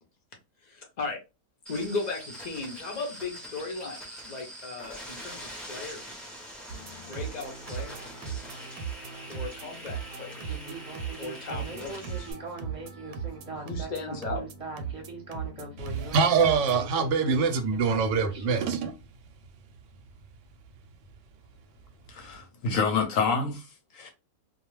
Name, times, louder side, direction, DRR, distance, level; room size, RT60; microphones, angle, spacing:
voice 1, 0.6-1.2 1.7-6.2 7.1-8.1 9.3-10.6 11.2-12.3 13.5-14.5, left 3 dB, 50° left, 0.5 m, -36 dB
sound 1, 1.7-12.3, equal, ahead, 0.5 m, -44 dB
sound 2, 6.7-16.8, right 7 dB, 90° right, 1.1 m, -39 dB
Speech synthesizer, 10.4-18.8, right 3 dB, 30° right, 0.7 m, -40 dB
voice 2, 15.8-18.9, right 5 dB, 65° right, 0.8 m, -24 dB
voice 3, 22.1-23.6 23.9-24.1, left 5 dB, 70° left, 0.9 m, -27 dB
2.3 x 2.3 x 3.0 m
omnidirectional pair, 1.6 m